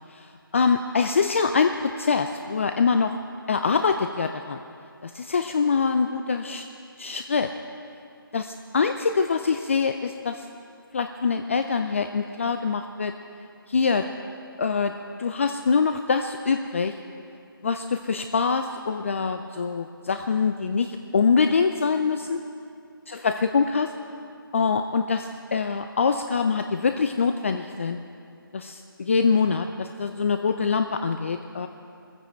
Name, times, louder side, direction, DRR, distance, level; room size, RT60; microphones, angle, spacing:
voice 1, 0.5-3.2 3.5-4.6 5.0-6.7 7.0-7.5 8.3-8.4 8.7-10.5 10.9-13.1 13.7-14.1 14.6-14.9 15.2-16.9 17.6-22.4 23.1-23.9 24.5-28.0 28.5-31.7, left 5 dB, 35° left, 8 dB, 0.4 m, -24 dB
19.0 x 15.0 x 4.4 m, 2.5 s
figure-of-eight pair, 160°, 12 cm